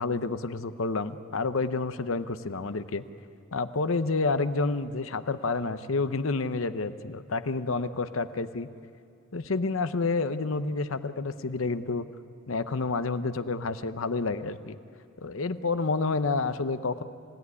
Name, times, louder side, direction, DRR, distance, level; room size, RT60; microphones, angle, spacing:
voice 1, 0.0-3.0 3.5-8.7 9.3-12.1 12.5-14.8 15.2-17.0, left 3 dB, 70° left, 12 dB, 0.8 m, -29 dB
28.5 x 17.0 x 9.7 m, 2.4 s
head